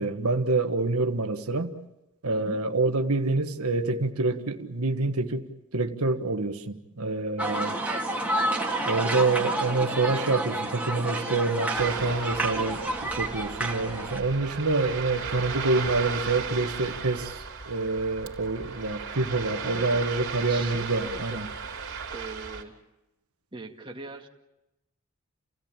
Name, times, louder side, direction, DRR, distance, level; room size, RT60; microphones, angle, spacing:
voice 1, 0.0-1.7 2.2-5.4 5.7-7.8 8.8-21.5, right 3 dB, 75° right, 1.4 m, -27 dB
sound 1, 7.4-14.2, right 2 dB, 5° right, 2.4 m, -29 dB
Ocean, 11.7-22.6, right 5 dB, 55° right, 3.4 m, -36 dB
voice 2, 19.6-20.1 20.5-21.5 22.1-22.7 23.5-24.3, right 2 dB, 20° right, 2.0 m, -40 dB
30.0 x 16.5 x 8.9 m
head